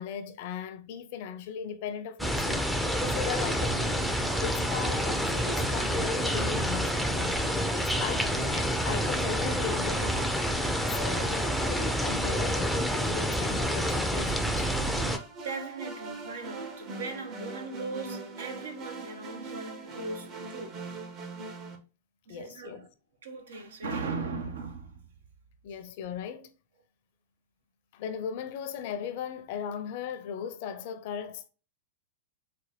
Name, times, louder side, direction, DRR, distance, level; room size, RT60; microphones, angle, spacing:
voice 1, 0.0-10.4 10.9-14.7 22.3-22.9 25.6-26.5 27.9-31.5, left 8 dB, 60° left, 0.5 m, -38 dB
sound 1, 2.2-15.2, equal, 5° right, 0.5 m, -28 dB
sound 2, 14.9-21.8, right 3 dB, 35° right, 0.8 m, -41 dB
voice 2, 15.0-20.9 22.3-22.9 23.2-25.1, right 4 dB, 80° right, 0.9 m, -38 dB
4.2 x 2.2 x 3.0 m
hypercardioid pair, 115°, 0 cm